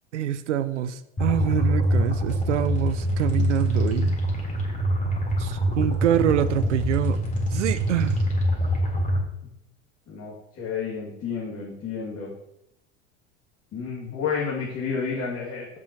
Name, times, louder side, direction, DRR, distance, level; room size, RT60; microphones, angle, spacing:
voice 1, 0.1-4.2 5.4-7.2 7.5-8.2, right 10 dB, 85° right, 14 dB, 0.6 m, -25 dB
sound 1, 1.2-9.2, equal, 20° left, 3.8 m, -24 dB
voice 2, 10.1-12.3 13.7-15.8, left 6 dB, 40° left, -4 dB, 2.5 m, -31 dB
15.0 x 6.1 x 3.0 m, 0.83 s
hypercardioid pair, 80°, 35 cm